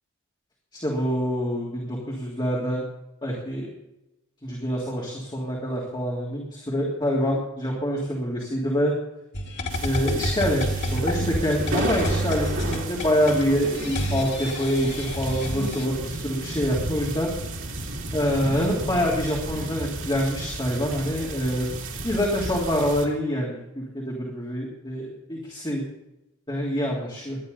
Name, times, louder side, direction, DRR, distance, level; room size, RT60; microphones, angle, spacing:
voice 1, 0.7-2.9 3.2-3.7 4.4-8.9 9.8-17.3 18.1-21.7 22.0-25.8 26.5-27.4, equal, 20° left, -3 dB, 3.2 m, -26 dB
sound 1, 9.3-15.9, equal, 50° left, 2.9 m, -29 dB
sound 2, 9.7-23.1, right 2 dB, 60° right, 2.9 m, -33 dB
19.0 x 12.5 x 4.1 m, 0.92 s
head